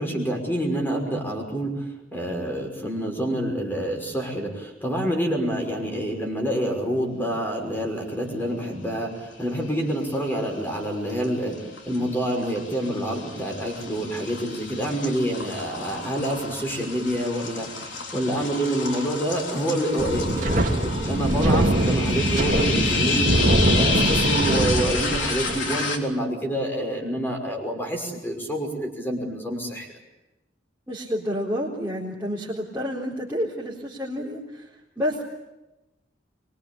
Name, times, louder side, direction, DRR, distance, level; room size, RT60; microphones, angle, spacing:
voice 1, 0.0-29.9, right 1 dB, 10° left, 2 dB, 5.7 m, -27 dB
sound 1, 9.6-10.1 10.5-26.0, left 4 dB, 80° left, 3.7 m, -30 dB
Wind, 20.0-25.6, right 1 dB, 45° right, 2.8 m, -22 dB
voice 2, 30.9-34.7 35.0-35.2, equal, 10° right, -6 dB, 4.0 m, -29 dB
24.5 x 23.5 x 8.6 m, 0.99 s
head